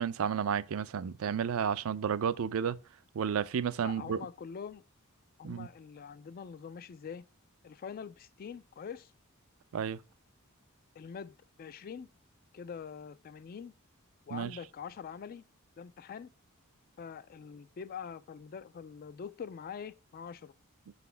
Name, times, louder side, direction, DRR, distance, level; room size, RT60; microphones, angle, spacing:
voice 1, 0.0-2.8 3.1-4.2 5.4-5.7 9.7-10.0 14.3-14.5, right 7 dB, 65° right, 0.4 m, -32 dB
voice 2, 3.8-4.8 5.4-7.3 7.6-9.1 11.0-12.1 12.5-13.7 14.3-15.4 15.8-16.3 17.0-20.5, left 6 dB, 40° left, 0.3 m, -44 dB
5.8 x 4.1 x 5.5 m
head